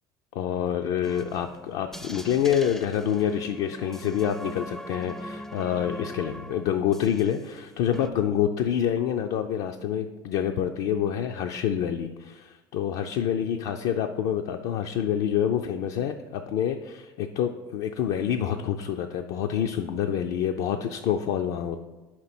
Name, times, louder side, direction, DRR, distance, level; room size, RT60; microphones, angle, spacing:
voice 1, 0.3-21.8, left 9 dB, 70° left, 5 dB, 0.4 m, -27 dB
sound 1, 1.0-7.6 7.9-8.1, equal, 5° left, 0.4 m, -42 dB
4.7 x 4.3 x 5.9 m, 1.1 s
supercardioid pair, 85°, 12 cm